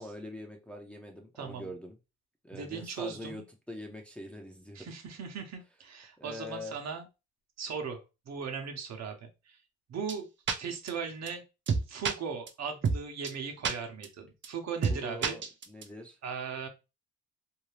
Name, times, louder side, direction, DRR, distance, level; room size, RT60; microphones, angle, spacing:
voice 1, 0.0-2.0 2.4-3.4 3.7-4.9 6.2-6.7 14.9-16.2, left 1 dB, 5° left, 1 dB, 0.6 m, -43 dB
voice 2, 1.4-1.7 2.5-3.4 4.7-7.1 7.6-9.6 9.9-10.3 10.6-11.4 11.9-15.4 16.2-16.7, right 6 dB, 60° right, 4 dB, 0.9 m, -38 dB
sound 1, 10.1-10.2 10.5-10.6 10.9-11.0 11.3-11.4 11.7-12.1 12.5-12.6 12.8-13.0 13.2-13.3 13.6-13.7 14.0-14.1 14.4-14.5 14.8-15.0 15.2-15.8, right 5 dB, 40° right, 0.6 m, -28 dB
2.7 x 2.2 x 3.2 m, 0.27 s
cardioid pair, 90°, 30 cm